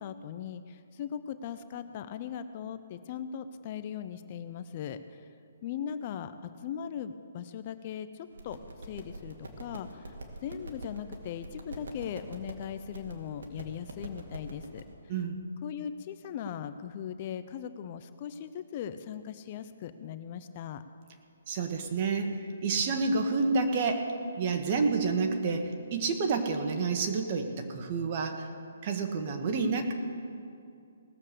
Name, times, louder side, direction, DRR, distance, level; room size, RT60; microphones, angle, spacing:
voice 1, 0.0-5.2 5.6-10.2 10.4-14.8 15.6-20.8, left 8 dB, 35° left, 11 dB, 0.6 m, -39 dB
sound 1, 8.3-14.8, right 1 dB, 75° right, 2.1 m, -45 dB
voice 2, 21.5-24.1 24.4-28.5 28.8-29.9, right 4 dB, 35° right, 5 dB, 1.5 m, -29 dB
19.0 x 7.2 x 6.7 m, 2.4 s
hypercardioid pair, 155°, 0 cm